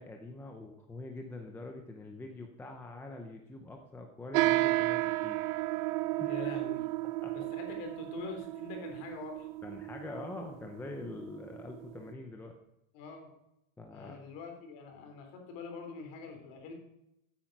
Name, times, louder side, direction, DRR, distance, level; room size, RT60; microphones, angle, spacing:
voice 1, 0.0-5.4 6.2-6.3 7.2-7.3 9.6-12.5 13.8-14.2, left 2 dB, 5° left, 3 dB, 0.5 m, -44 dB
sound 1, 4.3-12.1, right 19 dB, 50° right, 0.6 m, -33 dB
voice 2, 6.3-6.9 7.3-9.5 12.9-13.3 13.9-16.7, left 5 dB, 45° left, 4 dB, 3.3 m, -44 dB
15.5 x 8.8 x 5.9 m, 0.84 s
supercardioid pair, 170°, 45 cm